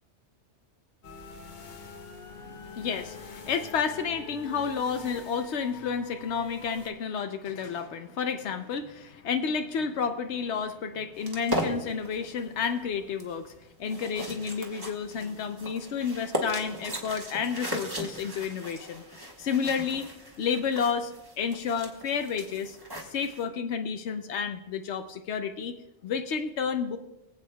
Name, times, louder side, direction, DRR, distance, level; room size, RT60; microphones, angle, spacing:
sound 1, 1.0-6.9, left 4 dB, 45° left, 0.9 m, -45 dB
voice 1, 2.3-13.5 13.8-20.1 20.4-21.1 21.4-22.8 23.1-25.8 26.0-27.0, left 6 dB, 80° left, 7 dB, 0.9 m, -31 dB
sound 2, 11.2-23.4, equal, 20° right, 1.3 m, -37 dB
23.5 x 8.1 x 2.3 m, 0.97 s
omnidirectional pair, 1.1 m